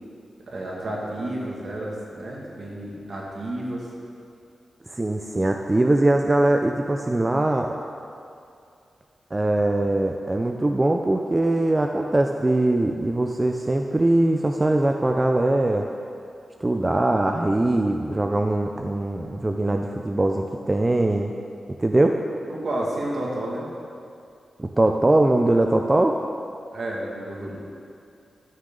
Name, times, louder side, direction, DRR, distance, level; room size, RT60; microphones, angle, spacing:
voice 1, 0.5-3.9 22.5-23.7 26.7-27.6, right 1 dB, 60° right, -4 dB, 2.1 m, -31 dB
voice 2, 4.9-7.7 9.3-15.9 16.6-21.3 21.8-22.2 24.6-26.2, right 2 dB, 20° right, 3 dB, 0.4 m, -21 dB
13.0 x 6.5 x 3.8 m, 2.5 s
wide cardioid pair, 95°, 0 cm